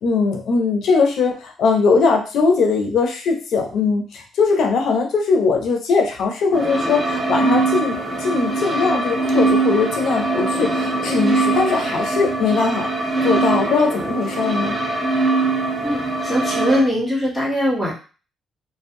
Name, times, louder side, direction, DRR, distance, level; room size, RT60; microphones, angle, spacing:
voice 1, 0.0-12.9 13.2-14.7, left 4 dB, 75° left, 3 dB, 0.5 m, -20 dB
sound 1, 6.5-16.8, right 3 dB, 20° right, 0.9 m, -22 dB
voice 2, 15.8-17.9, equal, 5° left, -4 dB, 1.3 m, -21 dB
2.5 x 2.1 x 2.6 m, 0.36 s
cardioid pair, 90°, 0 cm